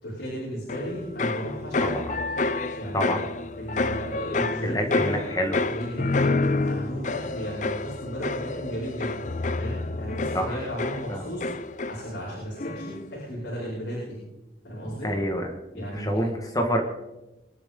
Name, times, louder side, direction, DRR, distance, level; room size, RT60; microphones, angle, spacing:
voice 1, 0.0-2.0 2.8-3.2 3.6-5.2 5.7-6.3 6.6-9.2 9.6-14.2 14.6-15.1 15.7-16.2, equal, 85° left, -7 dB, 5.6 m, -35 dB
sound 1, 0.7-12.3 12.6-13.1, left 3 dB, 40° left, 0.5 m, -29 dB
voice 2, 4.6-5.6 10.3-10.6 11.1-11.2 15.0-15.4 15.7-16.8, equal, 20° left, 3 dB, 1.7 m, -27 dB
23.5 x 11.5 x 3.8 m, 1.0 s
head